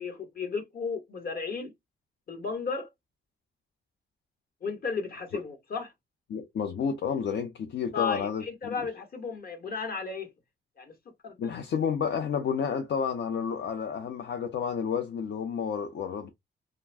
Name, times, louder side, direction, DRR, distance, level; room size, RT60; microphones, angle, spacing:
voice 1, 0.0-1.7 2.3-2.9 4.6-5.9 7.9-10.3 10.8-10.9 11.2-11.5, left 5 dB, 50° left, 1.1 m, -34 dB
voice 2, 6.3-8.9 11.4-16.3, left 7 dB, 65° left, 0.6 m, -30 dB
2.5 x 2.2 x 3.3 m
cardioid pair, 115°, 20 cm